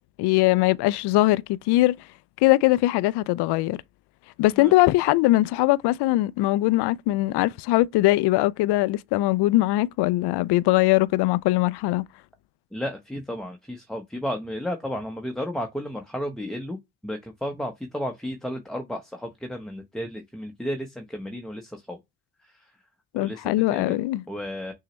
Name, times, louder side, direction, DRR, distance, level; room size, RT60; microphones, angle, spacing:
voice 1, 0.2-2.0 2.4-3.8 4.4-12.0 23.1-24.2, left 18 dB, 65° left, 0.5 m, -21 dB
voice 2, 12.7-22.0 23.1-24.0 24.3-24.7, equal, ahead, 0.8 m, -33 dB
6.2 x 2.8 x 3.0 m
hypercardioid pair, 50°, 45 cm